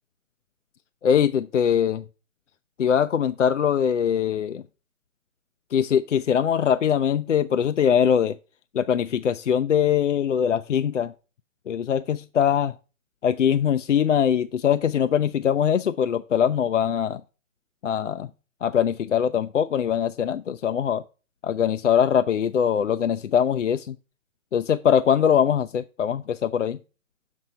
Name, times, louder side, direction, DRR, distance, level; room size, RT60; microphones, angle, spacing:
voice 1, 1.0-2.0 2.8-4.6 5.7-8.4 8.7-11.1 11.7-12.7 13.2-17.2 17.8-18.3 18.6-21.0 21.4-24.0 24.5-26.8, left 8 dB, 60° left, 0.5 m, -22 dB
6.6 x 6.1 x 4.3 m
figure-of-eight pair, 150°, 41 cm